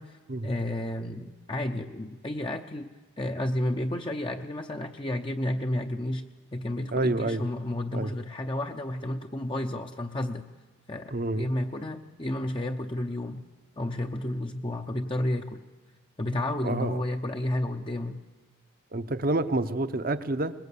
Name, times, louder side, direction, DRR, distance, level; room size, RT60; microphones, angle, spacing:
voice 1, 0.0-10.5 10.9-13.4 13.8-15.6 16.2-18.2, left 1 dB, 25° left, 4 dB, 0.7 m, -31 dB
voice 2, 6.9-7.4 7.9-8.1 11.1-11.5 16.6-17.0 18.9-20.5, right 2 dB, 45° right, 11 dB, 0.8 m, -28 dB
22.5 x 20.0 x 8.4 m, 1.3 s
head